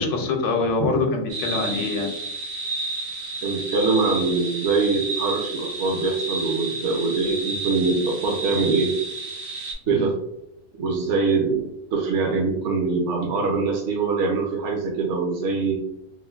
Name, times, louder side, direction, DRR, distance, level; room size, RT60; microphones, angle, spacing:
voice 1, 0.0-2.1 9.9-10.1, left 3 dB, 75° left, 2 dB, 0.9 m, -24 dB
sound 1, 1.3-9.7, right 2 dB, 85° right, 1.2 m, -31 dB
voice 2, 3.4-8.9 9.9-10.1 10.8-11.6 11.9-15.8, right 4 dB, 70° right, 0 dB, 0.8 m, -23 dB
3.1 x 2.1 x 2.3 m, 0.82 s
omnidirectional pair, 1.3 m